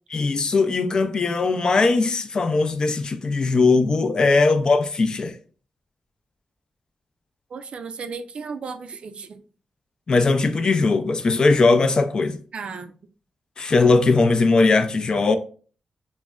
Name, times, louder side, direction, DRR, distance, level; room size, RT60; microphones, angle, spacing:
voice 1, 0.1-5.4 10.1-12.4 13.6-15.4, left 3 dB, 40° left, 0.3 m, -19 dB
voice 2, 7.5-9.4 12.5-12.9, right 5 dB, 60° right, 0.3 m, -34 dB
5.9 x 2.1 x 2.2 m
wide cardioid pair, 160°, 2 cm